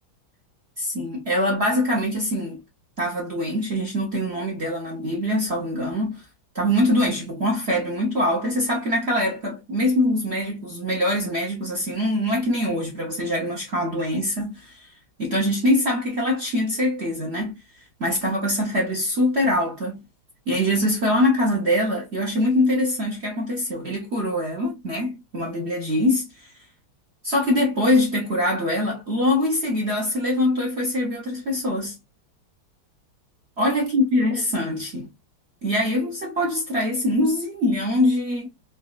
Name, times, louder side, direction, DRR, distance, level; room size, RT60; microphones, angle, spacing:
voice 1, 0.8-2.6 3.0-6.2 6.5-14.9 15.2-17.6 18.0-20.0 20.5-26.5 27.2-32.0 33.6-35.1 35.6-38.5, left 1 dB, 50° right, 0.8 m, -23 dB
4.0 x 2.3 x 2.3 m
omnidirectional pair, 2.3 m